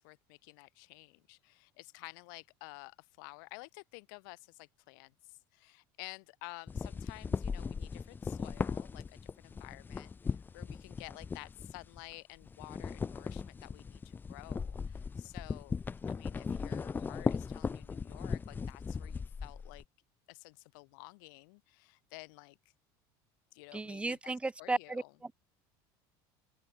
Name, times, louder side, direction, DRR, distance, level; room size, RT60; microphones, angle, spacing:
voice 1, 0.0-15.8 16.1-19.8 20.3-22.6 23.5-24.3 24.6-25.1, left 30 dB, 80° left, 4.8 m, -52 dB
sound 1, 6.7-12.1 12.4-19.8, left 5 dB, 20° left, 1.1 m, -38 dB
voice 2, 23.7-25.3, right 3 dB, 10° right, 2.0 m, -35 dB
open air
cardioid pair, 140°, 11 cm